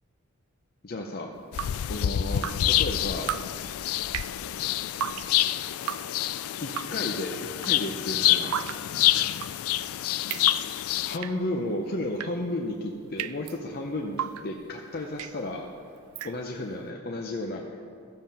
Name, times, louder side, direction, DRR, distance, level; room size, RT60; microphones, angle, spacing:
voice 1, 0.8-1.3 1.9-3.3 6.6-8.6 11.1-15.7 16.2-17.6, left 1 dB, 45° left, 0 dB, 0.7 m, -33 dB
Drip, 1.3-16.8, right 10 dB, 80° right, 0.3 m, -38 dB
sound 1, 1.5-11.2, left 13 dB, 85° left, 0.3 m, -27 dB
13.5 x 7.4 x 5.4 m, 2.4 s
head